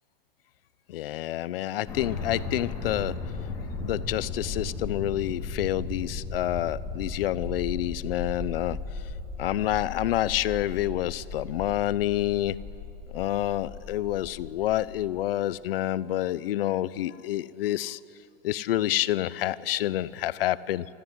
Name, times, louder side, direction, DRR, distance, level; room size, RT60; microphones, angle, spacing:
voice 1, 0.9-3.1 3.8-8.8 9.4-12.6 13.1-18.0 18.4-20.9, left 14 dB, 75° left, 18 dB, 0.7 m, -28 dB
sound 1, 1.9-14.9, left 3 dB, 10° left, 2.8 m, -36 dB
27.5 x 13.5 x 9.7 m, 2.9 s
supercardioid pair, 175°, 29 cm